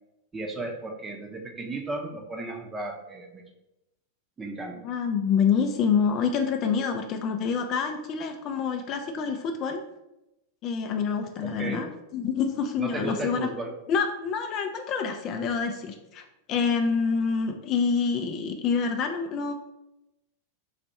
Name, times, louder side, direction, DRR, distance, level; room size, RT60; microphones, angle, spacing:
voice 1, 0.3-3.4 4.4-4.8 11.4-11.9 12.8-13.7, right 2 dB, 15° right, 2 dB, 0.7 m, -34 dB
voice 2, 4.8-9.8 10.6-11.9 12.1-13.5 13.9-16.2 16.5-19.5, left 6 dB, 35° left, 5 dB, 0.4 m, -27 dB
4.0 x 2.6 x 4.4 m, 0.92 s
figure-of-eight pair, 90°, 0 cm